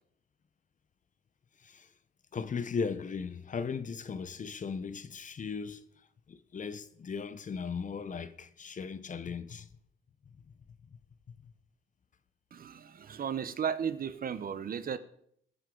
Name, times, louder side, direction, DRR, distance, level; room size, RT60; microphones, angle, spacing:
voice 1, 2.3-5.8 6.3-9.7, left 5 dB, 40° left, 0.9 m, -37 dB
voice 2, 12.5-15.0, right 7 dB, 45° right, 0.8 m, -35 dB
21.5 x 7.8 x 3.9 m
cardioid pair, 90°, 20 cm